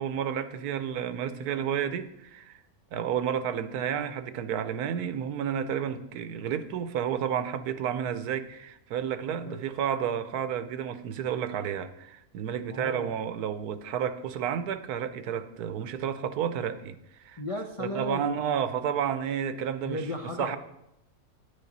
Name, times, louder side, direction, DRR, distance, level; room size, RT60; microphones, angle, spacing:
voice 1, 0.0-2.6 2.9-17.4 17.8-20.1 20.4-20.6, right 8 dB, 80° right, 12 dB, 1.2 m, -31 dB
voice 2, 12.7-13.1 17.4-18.4 19.9-20.6, left 1 dB, 55° left, 2 dB, 0.3 m, -35 dB
9.9 x 9.1 x 4.0 m, 0.84 s
omnidirectional pair, 1.6 m